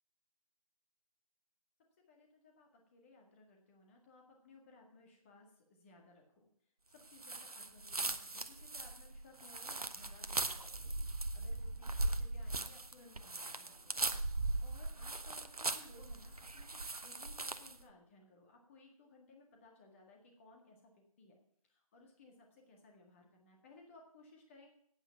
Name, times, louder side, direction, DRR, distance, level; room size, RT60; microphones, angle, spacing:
voice 1, 2.1-6.5 6.9-14.0 14.6-24.7, left 3 dB, 20° left, 1 dB, 1.8 m, -61 dB
sound 1, 7.2-17.8, right 2 dB, 80° right, 0.9 m, -39 dB
9.1 x 8.7 x 5.7 m, 0.69 s
figure-of-eight pair, 150°, 19 cm